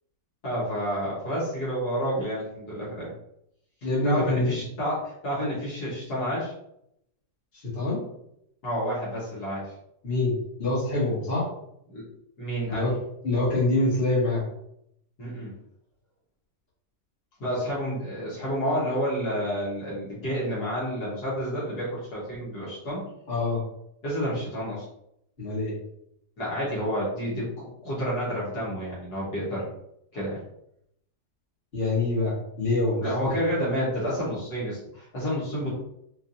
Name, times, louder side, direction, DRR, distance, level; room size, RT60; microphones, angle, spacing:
voice 1, 0.4-3.1 4.0-6.5 8.6-9.7 11.9-12.0 12.4-12.9 15.2-15.5 17.4-23.0 24.0-24.9 26.4-29.6 30.1-30.4 33.0-35.7, equal, 65° left, -7 dB, 1.9 m, -29 dB
voice 2, 3.8-4.6 7.5-8.0 10.0-10.3 10.6-11.5 12.6-13.0 13.2-14.4 23.3-23.6 25.4-25.7 31.7-33.4, left 2 dB, 35° left, -8 dB, 1.6 m, -25 dB
4.4 x 2.6 x 2.6 m, 0.76 s
omnidirectional pair, 1.9 m